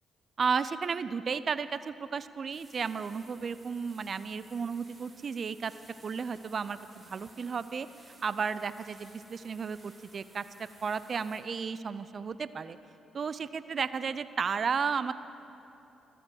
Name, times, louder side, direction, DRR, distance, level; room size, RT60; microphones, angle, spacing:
voice 1, 0.4-5.7 6.0-6.8 7.1-7.9 8.2-10.4 10.8-12.8 13.1-15.1, right 5 dB, 55° right, 14 dB, 0.5 m, -33 dB
sound 1, 2.5-11.4, right 2 dB, 20° right, 4.2 m, -58 dB
13.5 x 12.0 x 7.7 m, 2.9 s
supercardioid pair, 55°, 0 cm